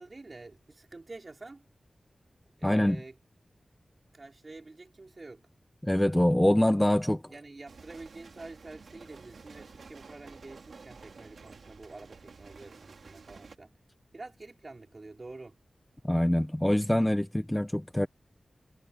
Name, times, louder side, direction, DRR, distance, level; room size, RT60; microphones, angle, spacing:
voice 1, 0.0-1.7 2.6-3.2 4.1-5.5 7.3-13.7 14.1-15.6, right 3 dB, 40° right, 5.2 m, -47 dB
voice 2, 2.6-3.0 5.8-7.2 16.0-18.1, left 1 dB, 10° left, 0.8 m, -24 dB
sound 1, 7.7-13.6, right 4 dB, 85° right, 2.2 m, -51 dB
wide cardioid pair, 75°, 0 cm